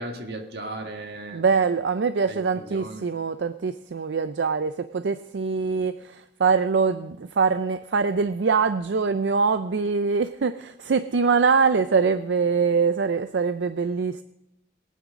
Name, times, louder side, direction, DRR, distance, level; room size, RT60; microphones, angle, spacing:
voice 1, 0.0-1.4 2.3-3.1, right 1 dB, 65° right, 4 dB, 1.8 m, -36 dB
voice 2, 1.3-14.2, right 5 dB, 85° right, 11 dB, 0.5 m, -23 dB
21.5 x 9.3 x 3.7 m, 0.94 s
head